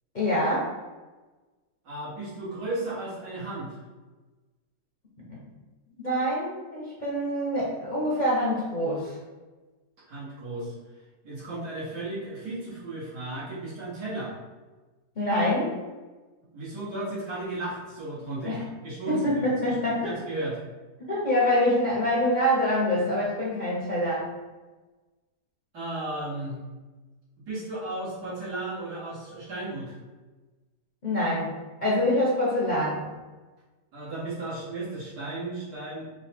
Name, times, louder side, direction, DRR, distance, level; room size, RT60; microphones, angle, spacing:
voice 1, 0.1-0.7 5.2-5.4 6.0-9.2 15.2-15.7 18.4-18.7 19.1-20.1 21.0-24.3 31.0-31.5 31.8-33.1, left 1 dB, 35° left, -7 dB, 0.8 m, -25 dB
voice 2, 1.8-3.8 10.1-10.7 11.2-14.3 16.5-18.6 18.8-19.3 19.7-19.8 20.0-20.6 25.7-26.6 27.5-30.0 33.9-36.0, right 2 dB, 80° right, -8 dB, 2.2 m, -34 dB
4.6 x 2.3 x 4.3 m, 1.2 s
omnidirectional pair, 1.7 m